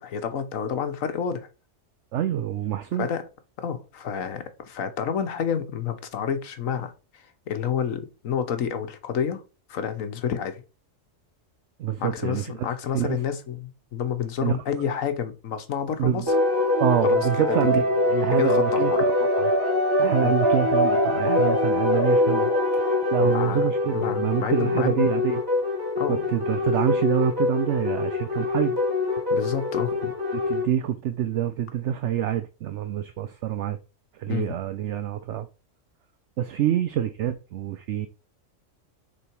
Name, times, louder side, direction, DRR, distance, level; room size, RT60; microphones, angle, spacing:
voice 1, 0.0-1.5 2.9-3.2 3.6-9.4 9.7-10.6 12.0-16.3 17.0-17.6 18.3-19.0 20.2-20.4 23.2-23.6 23.9-25.1 26.0-26.6 29.3-30.1 34.3-34.5, left 7 dB, 80° left, 1.4 m, -29 dB
voice 2, 2.1-3.1 11.8-12.7 12.9-13.2 14.4-14.6 16.0-16.3 16.8-19.5 20.0-22.8 23.1-25.4 26.1-28.8 30.3-33.8 34.1-35.5 36.4-38.1, right 10 dB, 70° right, 0.8 m, -26 dB
sound 1, 16.3-30.7, left 2 dB, 15° right, 2.1 m, -23 dB
6.7 x 3.8 x 4.5 m
omnidirectional pair, 1.4 m